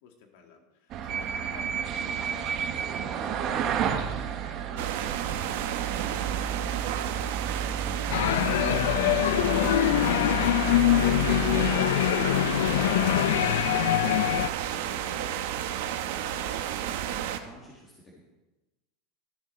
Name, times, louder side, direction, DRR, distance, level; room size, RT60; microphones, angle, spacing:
voice 1, 0.0-5.5 13.9-14.3, left 6 dB, 55° left, 4 dB, 1.9 m, -50 dB
sound 1, 0.9-11.7, right 8 dB, 30° right, 0.9 m, -32 dB
sound 2, 4.8-17.4, right 10 dB, 65° right, 0.9 m, -32 dB
voice 2, 6.3-9.1 14.7-18.2, equal, 10° left, -4 dB, 1.5 m, -49 dB
sound 3, 8.1-14.5, left 14 dB, 90° left, 0.3 m, -24 dB
13.5 x 9.5 x 4.2 m, 1.1 s
supercardioid pair, 175°, 0 cm